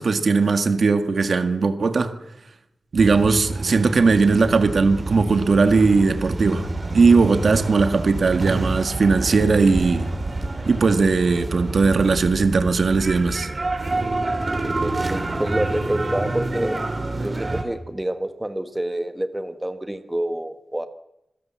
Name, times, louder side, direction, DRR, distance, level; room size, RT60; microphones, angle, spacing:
voice 1, 0.0-2.1 2.9-6.7 6.9-10.1 10.7-13.5, right 4 dB, 65° right, 8 dB, 1.8 m, -18 dB
sound 1, 3.0-17.6, right 2 dB, 40° right, 3.8 m, -28 dB
voice 2, 14.6-16.8 17.2-20.9, right 1 dB, 10° right, 9 dB, 1.5 m, -27 dB
26.5 x 16.5 x 7.5 m, 0.87 s
wide cardioid pair, 85°, 0 cm